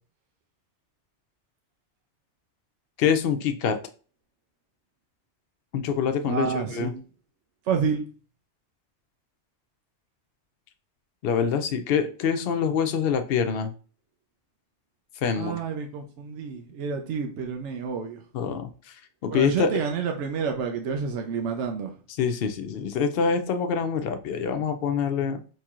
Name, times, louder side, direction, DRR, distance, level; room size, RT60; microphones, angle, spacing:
voice 1, 3.0-3.8 5.7-6.9 11.2-13.7 15.2-15.6 18.3-18.7 19.2-19.7 22.2-25.4, left 6 dB, 65° left, 0.7 m, -25 dB
voice 2, 6.2-7.0 7.7-8.0 15.3-18.2 19.3-21.9, right 6 dB, 80° right, 0.9 m, -29 dB
4.3 x 3.0 x 2.4 m
omnidirectional pair, 1.2 m